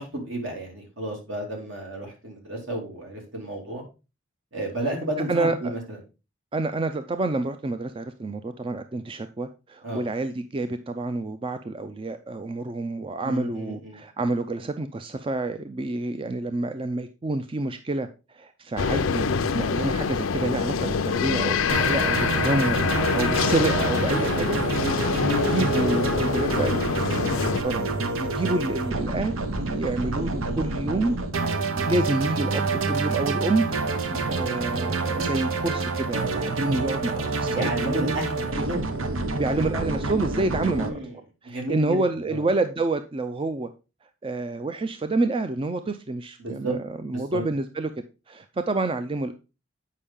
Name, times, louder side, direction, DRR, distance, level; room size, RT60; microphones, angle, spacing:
voice 1, 0.0-3.8 4.5-6.0 9.8-10.0 13.2-14.0 25.1-25.6 28.4-28.5 34.1-34.3 37.5-38.9 40.7-41.1 41.4-42.0 42.3-42.4 46.4-46.8 47.1-47.4, right 1 dB, 70° right, 0 dB, 2.8 m, -32 dB
voice 2, 5.3-5.7 6.5-22.8 23.1-24.6 24.8-29.3 29.6-31.2 31.8-33.7 34.3-38.1 38.6-38.7 39.3-40.9 41.4-43.7 44.2-47.9 48.3-49.3, right 2 dB, 25° right, 9 dB, 0.4 m, -28 dB
sound 1, 18.8-27.6, left 5 dB, 90° left, 0.6 m, -25 dB
sound 2, 21.7-40.9, right 3 dB, 90° right, 0.9 m, -27 dB
8.4 x 5.4 x 3.6 m, 0.29 s
head